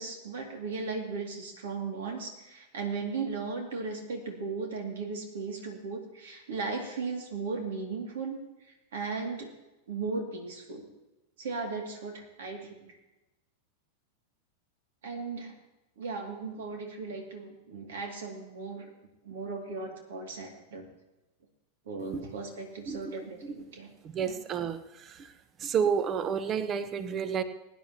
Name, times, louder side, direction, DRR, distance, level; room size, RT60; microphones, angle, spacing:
voice 1, 0.0-8.3 8.9-9.5 9.9-10.9 11.4-13.0 15.0-15.5 16.0-18.9 19.2-20.9 21.9-23.9 24.2-24.4, right 4 dB, 60° right, 2 dB, 2.5 m, -36 dB
voice 2, 24.0-25.3 25.6-27.4, right 7 dB, 30° right, 12 dB, 1.0 m, -30 dB
22.5 x 10.5 x 3.0 m, 1.0 s
figure-of-eight pair, 90°, 0 cm